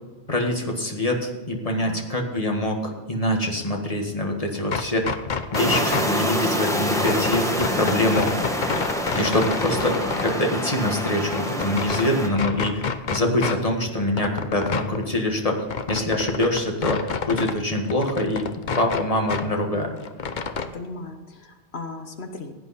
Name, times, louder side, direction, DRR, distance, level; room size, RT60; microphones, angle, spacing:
voice 1, 0.3-5.1 5.5-8.4 9.2-18.5 18.8-20.0, left 1 dB, 35° left, 1 dB, 1.8 m, -24 dB
sound 1, 4.6-6.2 6.9-10.4 10.8-12.1 12.4-13.6 13.9-17.6 17.8-19.5 19.8-20.7, left 5 dB, 50° left, 0.9 m, -29 dB
sound 2, 5.5-12.3, equal, 5° left, 1.3 m, -26 dB
voice 2, 8.1-8.5 20.7-22.5, left 3 dB, 75° left, 5 dB, 1.5 m, -36 dB
16.5 x 8.9 x 4.2 m, 1.3 s
omnidirectional pair, 1.1 m